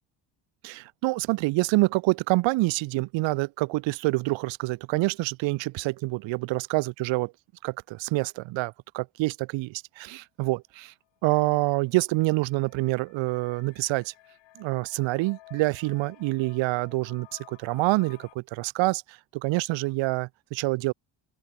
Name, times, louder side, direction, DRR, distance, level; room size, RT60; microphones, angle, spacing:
voice 1, 0.6-7.3 7.6-10.9 11.2-14.1 14.6-20.9, right 22 dB, 85° right, 0.8 m, -27 dB
sound 1, 11.2-18.4, left 16 dB, 80° left, 2.9 m, -53 dB
open air
cardioid pair, 120°, 44 cm